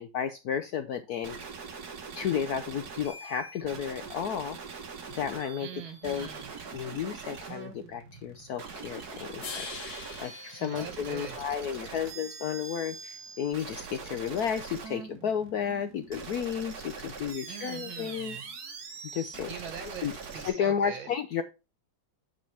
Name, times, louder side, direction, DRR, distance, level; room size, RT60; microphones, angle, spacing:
voice 1, 0.0-1.4 2.2-4.6 5.1-5.7 6.0-6.3 6.7-18.4 19.1-19.5 20.0-20.1 20.4-21.4, left 8 dB, 70° left, 9 dB, 0.9 m, -32 dB
sound 1, 1.2-20.5, right 5 dB, 55° right, 1.8 m, -43 dB
voice 2, 5.6-6.5 10.6-11.4 17.5-18.5 19.2-21.1, right 7 dB, 75° right, 7 dB, 2.1 m, -43 dB
sound 2, 9.4-11.8, left 5 dB, 55° left, 1.7 m, -43 dB
8.8 x 5.1 x 3.4 m, 0.28 s
omnidirectional pair, 2.2 m